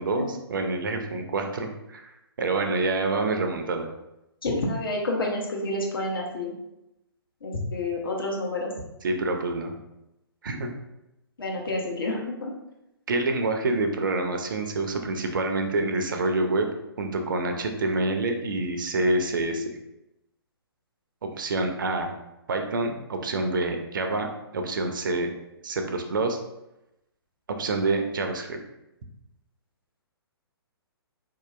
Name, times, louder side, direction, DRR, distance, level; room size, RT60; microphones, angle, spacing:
voice 1, 0.0-2.1 2.4-3.9 9.0-9.7 10.4-10.7 13.1-16.7 17.0-19.7 21.4-22.1 22.5-25.3 25.6-26.4 27.5-28.6, right 2 dB, 55° right, 5 dB, 0.5 m, -27 dB
voice 2, 4.4-6.5 7.4-8.7 11.4-12.5, left 2 dB, 60° left, -2 dB, 1.0 m, -29 dB
4.3 x 2.8 x 2.4 m, 0.90 s
figure-of-eight pair, 125°, 13 cm